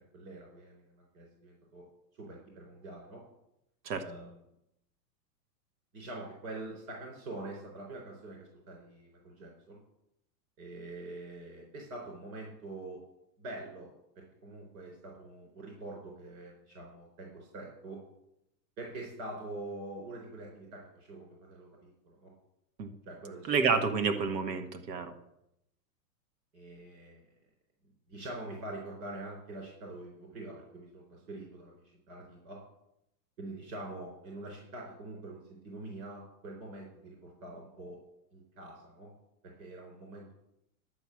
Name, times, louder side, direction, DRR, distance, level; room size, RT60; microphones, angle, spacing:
voice 1, 0.1-1.8 2.1-3.2 4.0-4.3 5.9-9.8 10.6-13.0 13.4-13.9 14.2-18.0 18.8-22.3 23.0-23.9 26.5-27.2 28.1-32.6 33.4-38.0 38.3-39.1 39.4-40.3, right 2 dB, 55° right, -1 dB, 4.5 m, -45 dB
voice 2, 23.5-25.1, right 5 dB, 80° right, 8 dB, 1.6 m, -29 dB
11.5 x 6.2 x 8.6 m, 0.81 s
supercardioid pair, 160°, 49 cm